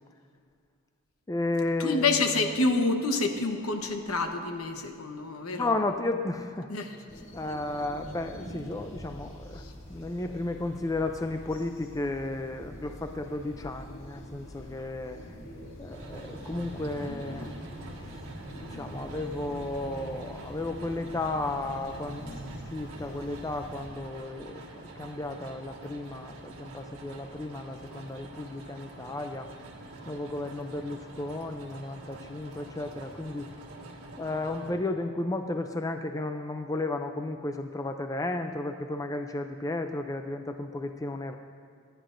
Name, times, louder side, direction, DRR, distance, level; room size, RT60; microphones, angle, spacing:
voice 1, 1.3-2.1 5.5-6.7 7.3-9.6 9.9-15.2 15.8-17.5 18.7-22.4 22.7-29.5 30.1-33.5 34.2-41.3, left 2 dB, 15° left, 6 dB, 0.3 m, -33 dB
voice 2, 1.8-5.7 6.7-7.0 9.6-9.7, left 3 dB, 75° left, 5 dB, 1.0 m, -28 dB
sound 1, 7.1-23.9, equal, 60° left, 2.1 m, -44 dB
sound 2, 15.9-34.7, right 2 dB, 70° right, 1.6 m, -46 dB
25.0 x 10.0 x 2.6 m, 2.2 s
head